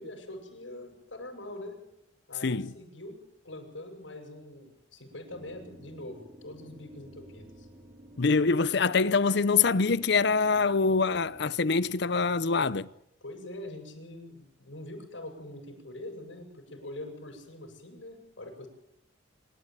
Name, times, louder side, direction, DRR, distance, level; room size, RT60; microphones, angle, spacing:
voice 1, 0.0-1.8 2.3-3.2 3.4-7.7 13.2-18.7, left 1 dB, 85° left, 7.6 m, -43 dB
voice 2, 2.4-2.7 8.2-12.9, left 4 dB, 65° left, 0.7 m, -25 dB
sound 1, 5.3-12.3, right 1 dB, 25° right, 2.2 m, -53 dB
26.0 x 13.0 x 9.3 m
head